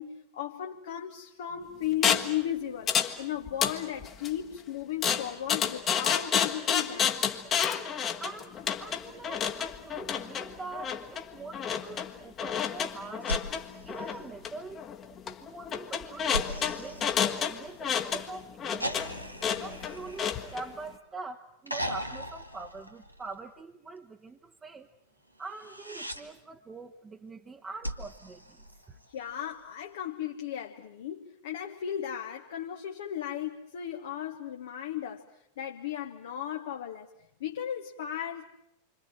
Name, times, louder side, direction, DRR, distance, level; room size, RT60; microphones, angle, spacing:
voice 1, 0.0-7.2 29.1-37.1 37.4-38.5, left 10 dB, 60° left, 1.5 m, -36 dB
sound 1, 2.0-2.3 2.9-3.2 3.5-4.3 5.0-20.6, left 8 dB, 25° left, 1.6 m, -30 dB
voice 2, 8.2-13.3 13.8-14.8 15.2-19.0 19.6-24.9 25.4-28.6 28.9-29.0, right 3 dB, 15° right, 1.3 m, -44 dB
sound 2, 13.2-14.8 16.3-18.0 18.8-21.1 21.7-23.5 25.5-26.2 27.8-29.3 30.8-30.9, equal, 90° right, 1.6 m, -39 dB
27.5 x 25.5 x 7.8 m
figure-of-eight pair, 90°, 0 cm